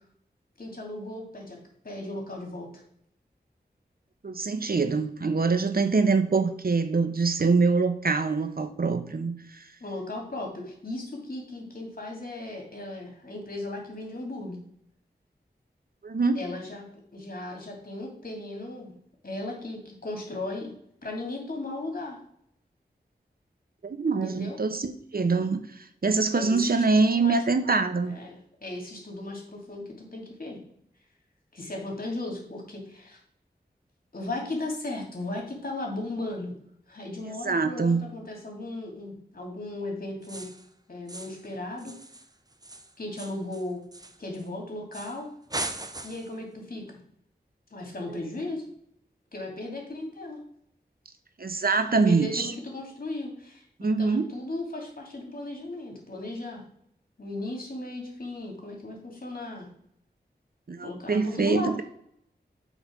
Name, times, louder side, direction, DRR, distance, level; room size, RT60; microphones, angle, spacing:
voice 1, 0.6-1.6 1.8-2.7 9.8-14.6 16.3-16.9 17.1-18.9 19.2-20.7 21.0-22.2 24.2-24.6 26.3-27.4 28.1-30.6 31.5-33.2 34.1-36.5 36.9-40.5 40.9-41.9 43.0-43.8 44.2-45.3 46.0-46.8 47.7-48.6 49.3-50.4 51.9-56.6 57.2-59.7 60.8-61.8, left 2 dB, 55° left, 0 dB, 2.6 m, -36 dB
voice 2, 4.2-9.6 16.0-16.4 23.8-28.1 37.4-38.0 51.4-52.5 53.8-54.2 60.7-61.8, right 4 dB, 60° right, 9 dB, 0.9 m, -24 dB
sound 1, 40.2-40.7 41.1-41.5 41.8-44.5 44.9-45.2 45.5-46.4, right 2 dB, 20° right, 0.7 m, -39 dB
7.9 x 4.0 x 6.0 m, 0.68 s
wide cardioid pair, 60°, 18 cm